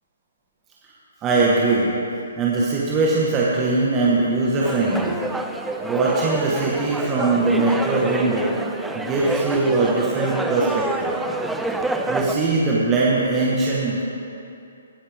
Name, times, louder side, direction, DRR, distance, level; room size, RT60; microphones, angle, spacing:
voice 1, 1.2-1.9 2.4-5.2 5.8-8.6 8.9-11.2 12.1-14.0, right 3 dB, 20° right, -5 dB, 1.4 m, -21 dB
sound 1, 4.6-12.3, right 2 dB, 5° right, 0.4 m, -28 dB
18.0 x 7.2 x 3.6 m, 2.6 s
hypercardioid pair, 145°, 0 cm